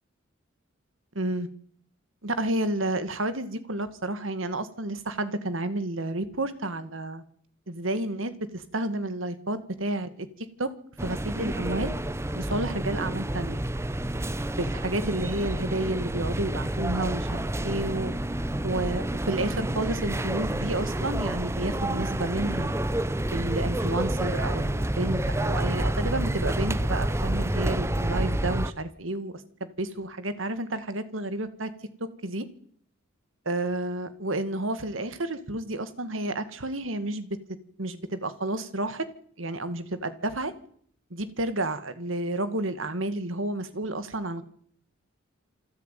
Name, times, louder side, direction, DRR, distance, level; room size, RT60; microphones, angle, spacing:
voice 1, 1.2-1.5 2.2-7.2 7.7-10.3 10.6-10.7 11.0-11.9 12.3-13.6 14.6-18.1 18.6-22.7 23.3-29.3 29.6-31.7 32.0-32.5 33.5-37.3 37.8-39.1 39.4-40.5 41.1-44.4, right 1 dB, 85° right, 11 dB, 2.0 m, -31 dB
sound 1, 11.0-28.7, right 1 dB, 15° right, 0.8 m, -29 dB
27.5 x 10.5 x 9.3 m, 0.62 s
head